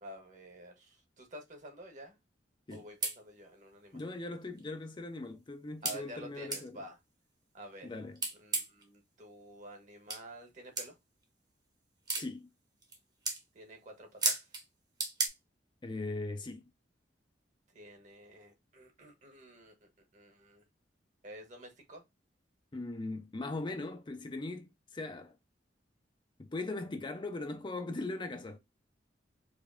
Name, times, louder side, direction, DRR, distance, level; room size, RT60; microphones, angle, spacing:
voice 1, 0.0-2.2 2.7-4.0 5.8-7.0 7.5-7.9 8.4-10.9 13.5-14.5 17.7-19.7 20.1-20.6 21.2-22.0, right 1 dB, 45° right, 1.2 m, -50 dB
sound 1, 2.7-2.8 3.0-3.2 4.0-4.1 4.6-4.7 5.9-6.0 6.5-6.6 8.2-8.8 10.1-10.2 10.8-10.9 12.1-12.3 12.8-13.0 13.3-13.4 14.2-14.6 15.0-15.3, right 3 dB, 20° right, 0.9 m, -32 dB
voice 2, 3.9-6.8 7.8-8.2 12.2-12.5 15.8-16.6 22.7-25.4 26.4-28.6, left 2 dB, 25° left, 0.5 m, -39 dB
4.8 x 2.6 x 2.5 m
head